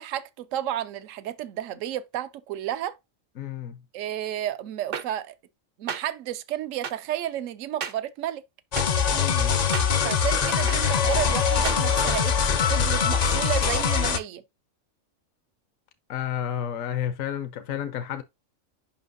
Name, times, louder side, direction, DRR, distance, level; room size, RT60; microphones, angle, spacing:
voice 1, 0.0-3.0 3.9-5.3 5.8-8.4 10.0-14.4, right 12 dB, 80° right, 1.0 m, -32 dB
voice 2, 3.4-3.8 9.1-9.6 16.1-18.2, left 10 dB, 80° left, 1.2 m, -31 dB
sound 1, 4.9-5.0 5.9-6.0 6.8-6.9 7.8-7.9 8.8-8.9 9.7-9.9 10.7-10.8 11.6-11.8, right 7 dB, 55° right, 0.7 m, -31 dB
sound 2, 8.7-14.2, left 6 dB, 50° left, 0.5 m, -23 dB
7.3 x 5.6 x 2.6 m
omnidirectional pair, 1.4 m